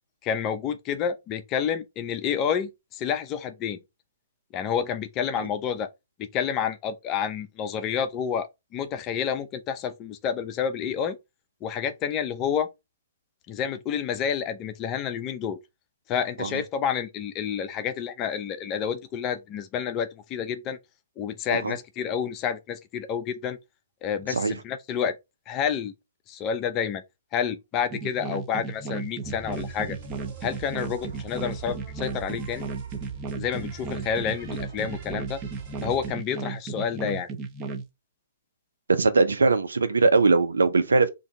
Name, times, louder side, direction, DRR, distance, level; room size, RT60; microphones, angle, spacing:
voice 1, 0.2-3.8 4.5-5.9 6.2-11.2 11.6-12.7 13.5-15.6 16.1-20.8 21.2-23.6 24.0-25.2 25.5-25.9 26.3-27.0 27.3-30.0 30.4-32.6 33.4-35.4 35.8-37.3, left 8 dB, 30° left, 0.5 m, -29 dB
sound 1, 27.9-37.8, right 4 dB, 25° right, 0.5 m, -34 dB
sound 2, 29.2-36.1, right 8 dB, 40° right, 1.3 m, -42 dB
voice 2, 38.9-41.1, right 3 dB, 80° right, 0.5 m, -21 dB
2.6 x 2.3 x 3.9 m
hypercardioid pair, 125°, 0 cm